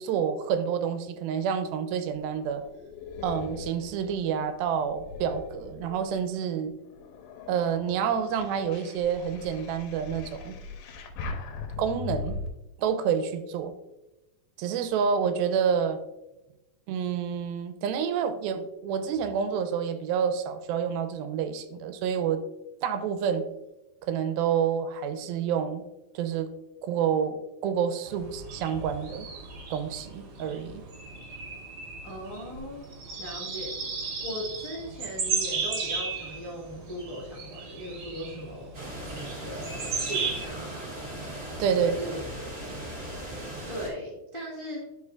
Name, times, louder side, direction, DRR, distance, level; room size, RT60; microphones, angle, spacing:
voice 1, 0.0-2.6 3.2-6.7 7.5-10.6 11.8-12.4 12.8-13.7 14.6-16.0 16.9-22.4 22.8-23.5 24.0-25.8 26.1-26.5 26.8-29.3 29.7-30.8 41.6-42.2, right 7 dB, 90° right, 9 dB, 2.5 m, -28 dB
sound 1, 2.1-6.3 6.8-12.5, left 4 dB, 85° left, 2.6 m, -40 dB
sound 2, 28.1-40.5, right 5 dB, 55° right, 1.8 m, -35 dB
voice 2, 32.0-32.8 33.2-33.7 34.2-41.1 41.7-42.2 43.7-44.8, equal, 25° left, -6 dB, 0.6 m, -39 dB
sound 3, 38.7-43.9, right 1 dB, 30° right, 1.1 m, -38 dB
11.0 x 4.8 x 2.4 m, 0.98 s
omnidirectional pair, 4.2 m